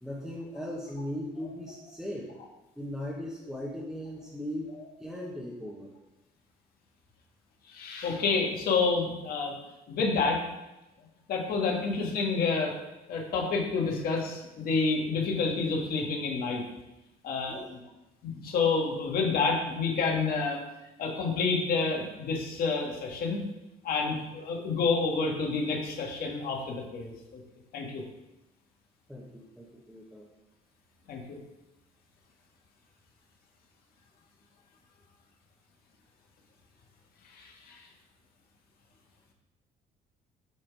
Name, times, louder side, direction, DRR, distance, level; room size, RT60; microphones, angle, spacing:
voice 1, 0.0-2.3 2.8-5.9 17.5-17.6 24.1-24.2 29.1-30.3, left 1 dB, ahead, -6 dB, 1.3 m, -38 dB
voice 2, 7.7-9.5 9.9-10.4 11.3-12.8 13.1-16.6 17.2-17.8 18.2-20.6 21.0-23.4 23.8-27.4 27.7-28.0 31.1-31.4 37.3-37.9, left 4 dB, 65° left, -1 dB, 1.8 m, -29 dB
9.1 x 3.7 x 4.9 m, 0.98 s
cardioid pair, 110°, 17 cm